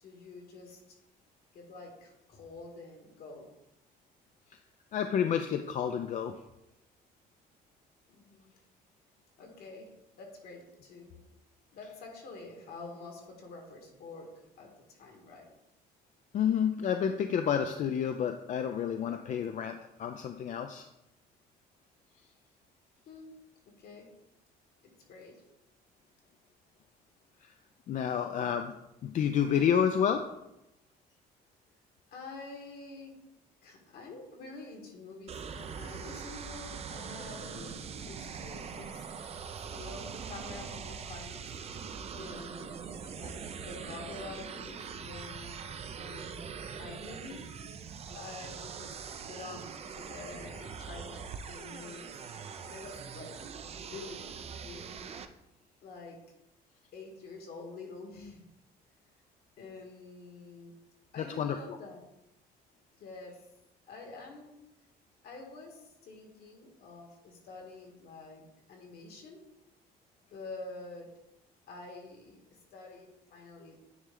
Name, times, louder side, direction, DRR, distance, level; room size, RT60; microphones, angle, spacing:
voice 1, 0.0-1.0 1.5-3.5 8.1-8.5 9.4-11.2 11.7-15.5 23.1-24.1 24.8-25.4 27.9-28.7 32.1-33.2 33.6-39.0 39.7-45.6 46.0-47.5 48.1-49.0 49.3-53.4 53.8-54.3 54.6-54.9 55.8-56.3 56.9-58.5 59.6-60.7 61.1-62.0 63.0-63.5 63.9-64.6 65.2-69.4 70.3-71.2 71.7-73.8, left 3 dB, 65° left, 2 dB, 1.7 m, -48 dB
voice 2, 4.9-6.3 16.3-20.9 27.9-28.7 29.0-30.2 61.2-61.6, left 8 dB, 50° left, 6 dB, 0.4 m, -29 dB
sound 1, 35.3-55.3, right 6 dB, 40° right, 0.5 m, -42 dB
9.4 x 3.1 x 3.8 m, 0.88 s
cardioid pair, 110°, 17 cm